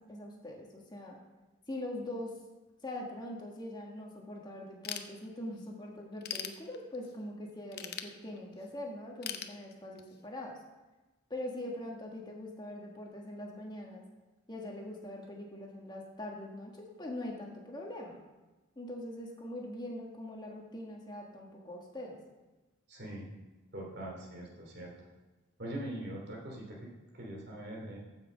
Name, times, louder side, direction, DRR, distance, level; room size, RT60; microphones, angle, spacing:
voice 1, 0.1-1.2 1.7-2.3 2.8-10.6 11.3-14.0 14.5-18.2 18.7-22.2, left 1 dB, 20° left, -1 dB, 1.5 m, -42 dB
Ratchet pawl / Tools, 4.8-5.6 6.0-7.2 7.7-8.7 9.2-10.2, left 9 dB, 50° left, 0.7 m, -41 dB
voice 2, 22.9-23.3 23.7-24.9 25.6-28.0, right 1 dB, 55° right, -1 dB, 2.9 m, -42 dB
15.0 x 5.9 x 5.2 m, 1.2 s
head